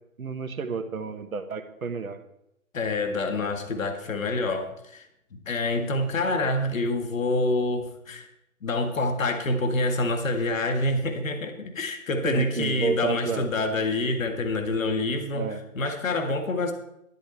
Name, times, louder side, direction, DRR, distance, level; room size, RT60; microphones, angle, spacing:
voice 1, 0.2-2.2 12.2-13.5 15.3-16.0, right 5 dB, 75° right, 8 dB, 1.4 m, -31 dB
voice 2, 2.7-5.0 5.3-8.3 8.6-16.7, left 2 dB, 65° left, 5 dB, 1.9 m, -27 dB
11.5 x 10.5 x 4.3 m, 0.81 s
hypercardioid pair, 155°, 42 cm